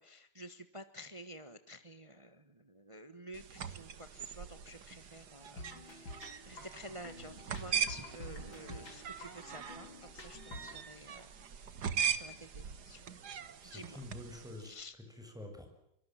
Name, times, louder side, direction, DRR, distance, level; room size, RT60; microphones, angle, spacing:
voice 1, 0.0-11.3 12.1-13.0 13.6-14.0 14.6-14.9, equal, 20° right, 10 dB, 1.1 m, -51 dB
sound 1, 3.3-14.7, right 7 dB, 55° right, 1.8 m, -41 dB
sound 2, 5.6-10.8, left 1 dB, 70° left, 5.3 m, -50 dB
voice 2, 13.6-14.8 15.1-15.7, left 1 dB, ahead, 4 dB, 6.7 m, -48 dB
24.5 x 24.0 x 7.6 m, 0.80 s
omnidirectional pair, 2.2 m